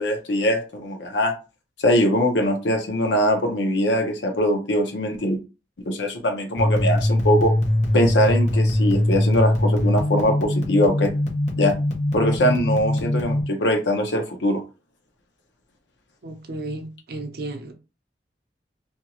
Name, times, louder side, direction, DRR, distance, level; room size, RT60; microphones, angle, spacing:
voice 1, 0.0-1.3 1.8-5.4 5.9-7.5 7.9-11.1 11.6-11.7 12.1-14.6, left 1 dB, 80° left, 0.7 m, -22 dB
sound 1, 6.6-13.4, left 1 dB, 40° left, 0.8 m, -22 dB
voice 2, 16.2-17.7, right 2 dB, 60° right, 0.6 m, -33 dB
2.6 x 2.3 x 2.9 m
head